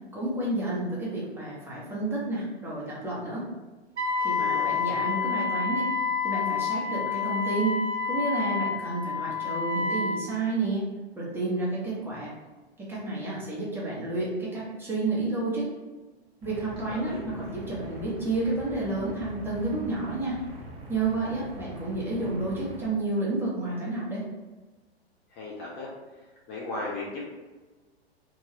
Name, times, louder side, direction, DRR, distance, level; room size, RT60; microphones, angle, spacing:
voice 1, 0.1-3.4 4.2-5.9 6.2-7.7 8.1-10.8 11.2-12.3 12.8-15.7 16.4-20.4 20.9-24.2, right 2 dB, 5° right, -7 dB, 0.7 m, -30 dB
Wind instrument woodwind instrument, 4.0-10.2, left 5 dB, 90° right, 0.5 m, -28 dB
voice 2, 4.4-4.8 16.9-17.2 25.3-25.9 26.5-27.2, left 2 dB, 25° left, -4 dB, 0.5 m, -36 dB
sound 1, 16.4-22.9, right 1 dB, 60° right, 0.8 m, -43 dB
2.9 x 2.3 x 2.8 m, 1.2 s
figure-of-eight pair, 105°, 32 cm